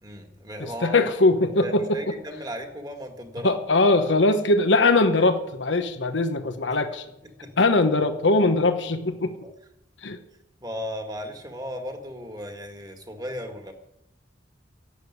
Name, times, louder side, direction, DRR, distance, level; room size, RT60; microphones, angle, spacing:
voice 1, 0.0-1.0 1.6-3.8 7.4-7.5 9.4-9.5 10.6-13.7, equal, 20° right, 5 dB, 1.9 m, -36 dB
voice 2, 0.6-2.0 3.4-7.0 7.6-9.4 10.0-10.2, left 2 dB, 80° left, 8 dB, 1.1 m, -21 dB
12.0 x 8.2 x 9.8 m, 0.84 s
head